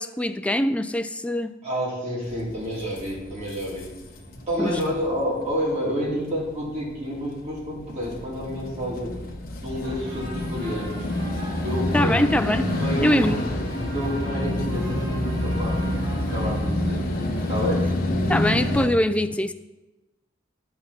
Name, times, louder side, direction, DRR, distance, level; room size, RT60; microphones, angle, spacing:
voice 1, 0.0-1.5 4.6-4.8 11.9-12.7 13.0-13.4 18.3-19.5, left 1 dB, 5° left, 0.3 m, -23 dB
voice 2, 1.6-3.9 4.5-9.1 9.6-11.1 11.6-12.2 12.8-13.4 13.7-15.8 16.2-17.0 17.5-17.9, equal, 35° right, 3.1 m, -29 dB
sound 1, 2.2-18.9, left 1 dB, 50° left, 1.1 m, -28 dB
sound 2, 9.8-17.9, right 1 dB, 60° right, 1.7 m, -42 dB
10.0 x 4.8 x 5.9 m
head